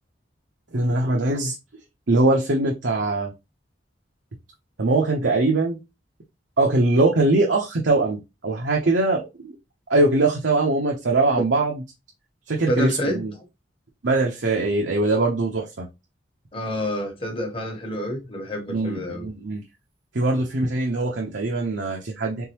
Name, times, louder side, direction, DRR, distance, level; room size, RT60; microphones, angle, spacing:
voice 1, 0.7-1.5 2.1-3.3 4.8-5.8 6.6-9.2 9.9-11.8 12.5-13.3 14.0-15.9 18.7-19.6 20.1-22.5, right 2 dB, 75° right, 0.8 m, -22 dB
voice 2, 12.7-13.3 16.5-19.3, equal, 30° left, 1.1 m, -28 dB
3.7 x 3.7 x 2.9 m
head